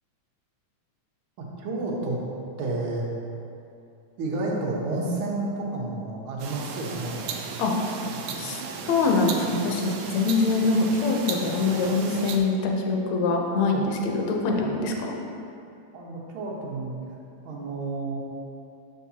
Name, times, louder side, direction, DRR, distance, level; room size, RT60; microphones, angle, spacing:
voice 1, 1.6-2.2 2.6-3.1 4.2-7.4 8.1-8.4 15.9-17.0 17.4-18.2, right 2 dB, 60° right, -3 dB, 1.5 m, -30 dB
sound 1, 6.4-12.4, right 5 dB, 90° right, 1.4 m, -35 dB
voice 2, 8.9-15.2, left 3 dB, 70° left, 1 dB, 1.9 m, -24 dB
11.0 x 4.7 x 2.8 m, 2.6 s
omnidirectional pair, 3.5 m